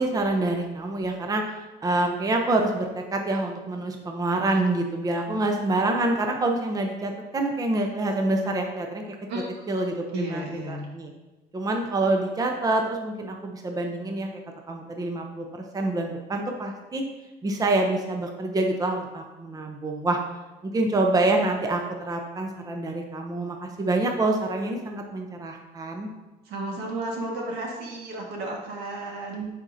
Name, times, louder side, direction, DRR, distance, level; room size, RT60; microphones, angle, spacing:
voice 1, 0.0-1.4 1.8-9.2 9.7-11.1 11.5-14.4 14.7-17.0 17.4-20.2 20.6-26.1, right 2 dB, 20° right, 3 dB, 0.7 m, -26 dB
voice 2, 10.1-10.9 26.5-29.5, right 2 dB, 80° right, -1 dB, 1.6 m, -33 dB
9.6 x 4.3 x 2.7 m, 1.1 s
cardioid pair, 110°, 17 cm